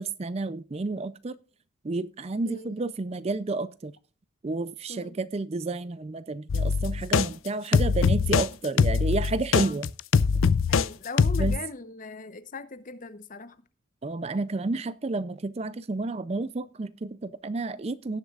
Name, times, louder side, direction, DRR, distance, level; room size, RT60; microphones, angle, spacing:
voice 1, 0.0-1.4 1.8-4.0 4.4-9.9 11.4-11.6 14.0-18.2, right 3 dB, 30° right, 0.4 m, -31 dB
sound 1, 6.5-7.3 7.7-8.5 8.8-10.9 11.2-11.6, left 5 dB, 75° left, 0.5 m, -22 dB
voice 2, 10.7-13.6, left 3 dB, 40° left, 0.8 m, -40 dB
18.0 x 7.9 x 2.4 m
head